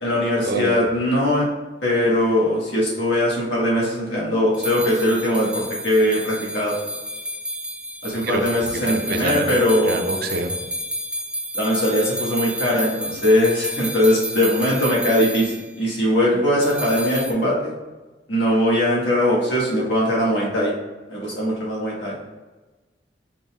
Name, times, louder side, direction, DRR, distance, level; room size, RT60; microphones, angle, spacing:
voice 1, 0.0-1.5 1.8-6.7 8.0-10.0 11.5-17.7 18.3-20.7 21.1-22.2, left 1 dB, 75° left, -5 dB, 1.5 m, -20 dB
sound 1, 4.5-15.6 16.6-17.3, right 1 dB, 5° right, 0.3 m, -31 dB
voice 2, 8.7-9.5 9.8-10.5, right 3 dB, 60° right, 5 dB, 0.5 m, -26 dB
5.3 x 3.9 x 2.3 m, 1.2 s
head